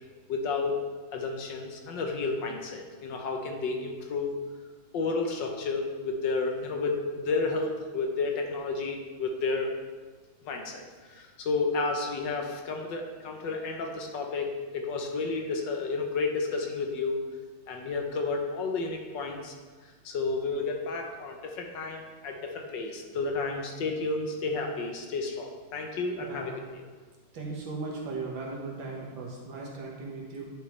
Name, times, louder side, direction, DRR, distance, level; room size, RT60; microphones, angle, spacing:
voice 1, 0.3-0.8 1.1-4.3 4.9-9.7 10.4-17.2 17.7-19.5 19.8-26.5, left 3 dB, 70° left, 3 dB, 1.4 m, -31 dB
voice 2, 26.2-26.6 27.3-30.4, right 3 dB, 70° right, -2 dB, 2.1 m, -37 dB
10.5 x 5.5 x 3.2 m, 1.4 s
omnidirectional pair, 2.2 m